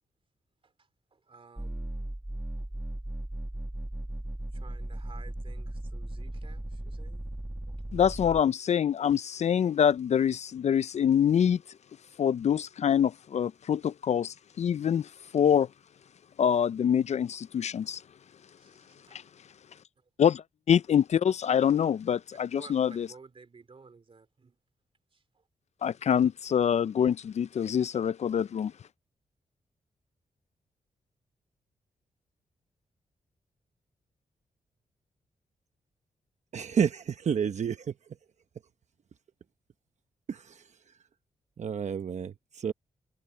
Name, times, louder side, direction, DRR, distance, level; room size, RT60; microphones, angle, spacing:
voice 1, 0.6-2.0 2.6-2.7 4.5-7.3 7.7-7.8 18.6-19.2 20.0-20.1 22.1-24.6 25.1-25.4, right 4 dB, 40° right, 2.8 m, -54 dB
sound 1, 1.6-8.4, right 1 dB, 10° right, 1.5 m, -37 dB
voice 2, 7.9-11.6 12.2-15.7 16.4-18.0 19.1-19.2 20.2-23.1 25.8-28.7, left 8 dB, 55° left, 0.4 m, -25 dB
voice 3, 36.5-37.9 40.3-40.7 41.6-42.7, right 7 dB, 60° right, 1.0 m, -30 dB
cardioid pair, 85°, 14 cm